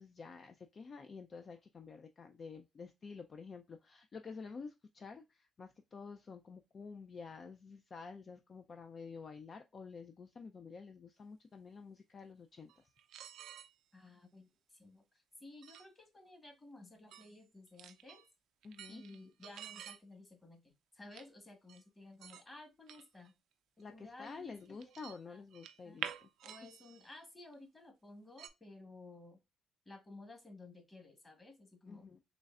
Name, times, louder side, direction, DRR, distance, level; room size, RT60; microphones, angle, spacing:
voice 1, 0.0-12.9 18.6-19.0 23.8-26.7 31.9-32.2, left 5 dB, 45° left, 0.4 m, -50 dB
sound 1, 12.7-13.7 15.6-15.9 17.1-17.3 17.7-18.3 18.6-20.0 21.1-21.3 21.7-21.8 22.2-22.4 22.9-23.3 23.8-23.9 24.3-25.2 25.5-27.1 27.5-27.6 28.4-28.5, right 10 dB, 80° right, 0.4 m, -48 dB
voice 2, 13.9-18.2 18.9-23.3 23.9-24.9 25.3-25.4 25.8-26.0 26.4-29.4 29.8-32.1, left 2 dB, 25° left, 1.4 m, -55 dB
3.8 x 3.1 x 2.3 m
cardioid pair, 90°, 0 cm